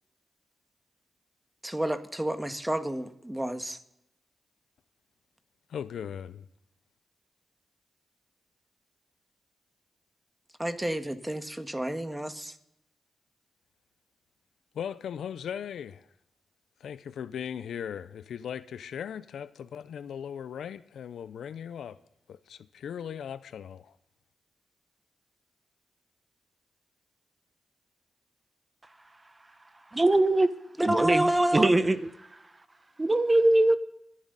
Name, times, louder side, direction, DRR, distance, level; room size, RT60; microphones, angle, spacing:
voice 1, 1.6-3.8 10.6-12.5 30.8-31.7, right 1 dB, 10° right, 1.7 m, -29 dB
voice 2, 5.7-6.5 14.7-16.0 16.8-22.0 22.3-23.9, left 8 dB, 85° left, 0.6 m, -38 dB
voice 3, 29.9-30.5 30.8-32.0 33.0-33.8, right 2 dB, 25° right, 1.3 m, -22 dB
27.0 x 11.0 x 4.1 m
cardioid pair, 55°, 0 cm